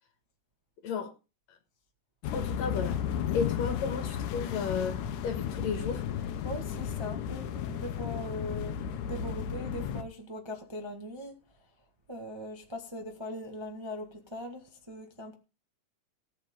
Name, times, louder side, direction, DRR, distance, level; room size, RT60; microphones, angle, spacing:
sound 1, 2.2-10.0, left 8 dB, 85° left, 2.5 m, -34 dB
voice 1, 2.3-3.0 3.3-6.0, left 5 dB, 65° left, 2.7 m, -33 dB
voice 2, 6.4-11.3 12.1-15.3, left 1 dB, 15° right, 1.0 m, -40 dB
18.0 x 8.1 x 3.8 m
omnidirectional pair, 3.4 m